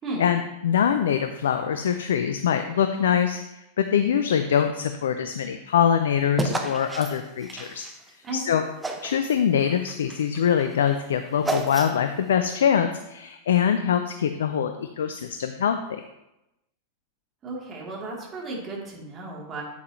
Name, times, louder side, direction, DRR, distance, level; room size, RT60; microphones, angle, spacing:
voice 1, 0.2-7.8 8.3-8.6 9.0-16.0, left 8 dB, 65° left, 8 dB, 0.5 m, -24 dB
sound 1, 6.4-8.4 8.8-9.3 9.6-12.2, right 2 dB, 10° right, 1.1 m, -32 dB
voice 2, 8.2-8.6 17.4-19.6, right 2 dB, 25° right, -3 dB, 3.1 m, -34 dB
9.4 x 8.8 x 3.1 m, 0.91 s
figure-of-eight pair, 90°, 0 cm